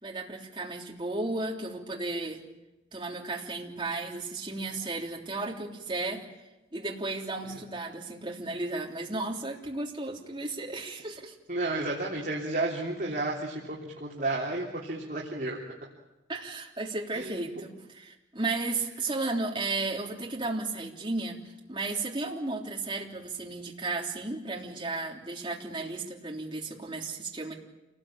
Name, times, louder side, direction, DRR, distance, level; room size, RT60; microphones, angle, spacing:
voice 1, 0.0-2.4 2.9-6.2 6.7-11.3 16.3-21.4 21.7-27.5, right 2 dB, 25° right, -1 dB, 3.4 m, -34 dB
voice 2, 11.5-15.6 17.1-17.5, right 2 dB, 50° right, -4 dB, 3.4 m, -32 dB
28.5 x 19.0 x 8.8 m, 1.0 s
head